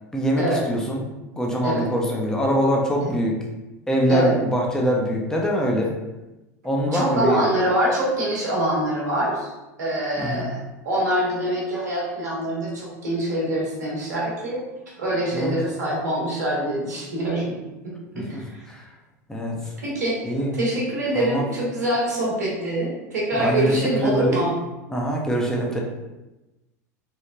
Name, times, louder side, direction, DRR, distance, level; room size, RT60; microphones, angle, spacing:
voice 1, 0.1-1.1 1.4-3.4 3.9-5.9 6.6-7.4 10.2-10.5 15.3-15.6 18.3-18.4 18.7-18.9 19.3-19.6 20.2-20.6 21.1-21.5 23.3-24.4 24.9-25.8, equal, 5° left, -2 dB, 0.6 m, -23 dB
voice 2, 6.8-9.5 9.8-10.6 10.8-14.6 15.0-17.6 17.8-18.6 19.8-20.2 20.5-24.5, right 1 dB, 80° right, -4 dB, 0.9 m, -24 dB
3.1 x 2.1 x 2.5 m, 1.0 s
hypercardioid pair, 85°, 9 cm